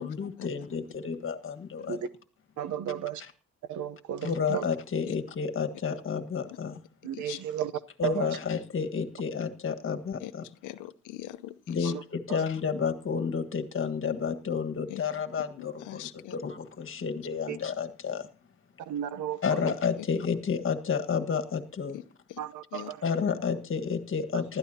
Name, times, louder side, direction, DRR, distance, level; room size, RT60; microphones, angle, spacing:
voice 1, 0.0-2.0 4.2-6.8 8.0-10.4 11.7-18.3 19.4-22.0 23.0-24.6, left 6 dB, 45° left, 1.6 m, -31 dB
voice 2, 2.6-3.2 3.7-4.7 7.0-7.7 8.0-8.4 11.8-12.0 12.3-12.4 17.5-17.6 18.8-19.7 22.4-23.0 24.3-24.4, right 10 dB, 75° right, 0.9 m, -34 dB
voice 3, 10.6-11.9 14.9-15.0 15.6-16.4 20.0-20.1 21.9-22.0 22.3-22.4 22.7-22.9, left 15 dB, 90° left, 0.8 m, -41 dB
19.5 x 13.0 x 2.8 m
cardioid pair, 90°, 30 cm